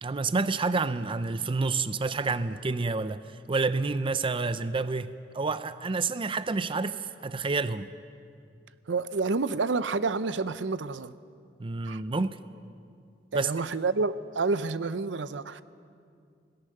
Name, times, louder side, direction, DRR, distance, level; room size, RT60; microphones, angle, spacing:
voice 1, 0.0-3.2 3.5-7.9 11.6-12.4 13.3-13.5, right 3 dB, 30° right, 0.5 m, -29 dB
voice 2, 8.9-11.1 11.9-12.0 13.3-15.6, right 4 dB, 75° right, 0.6 m, -29 dB
26.5 x 18.0 x 6.6 m
head